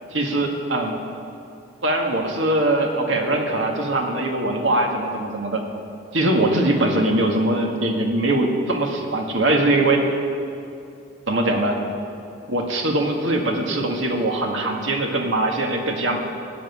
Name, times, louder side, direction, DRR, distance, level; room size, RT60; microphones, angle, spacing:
voice 1, 0.1-0.9 1.8-5.6 6.1-10.2 11.3-11.8 12.5-16.2, right 1 dB, 85° right, 2 dB, 1.9 m, -21 dB
16.5 x 6.9 x 9.7 m, 2.5 s
head